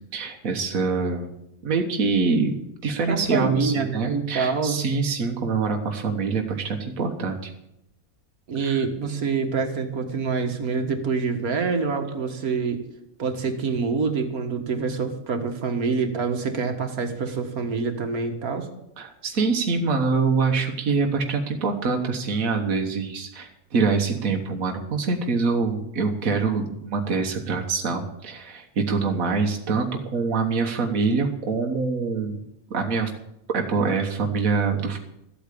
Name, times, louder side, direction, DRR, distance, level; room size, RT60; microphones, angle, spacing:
voice 1, 0.0-1.3 1.6-2.6 2.8-7.5 8.6-8.8 19.0-32.4 32.7-33.1 33.5-35.0, right 4 dB, 70° right, 3 dB, 1.8 m, -25 dB
voice 2, 3.1-4.8 8.5-12.8 13.2-18.7, right 5 dB, 85° right, 5 dB, 2.0 m, -26 dB
14.0 x 8.5 x 8.4 m, 0.82 s
omnidirectional pair, 1.5 m